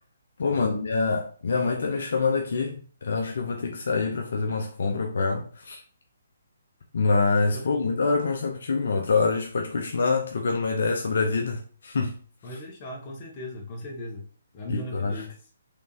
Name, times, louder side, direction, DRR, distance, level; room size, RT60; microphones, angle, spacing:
voice 1, 0.4-5.8 6.9-12.1 14.7-15.1, left 4 dB, 65° left, 0.6 m, -25 dB
voice 2, 7.5-8.0 12.4-14.3 14.5-15.3, equal, 30° left, 1.2 m, -38 dB
3.6 x 3.5 x 2.8 m
figure-of-eight pair, 140°, 0 cm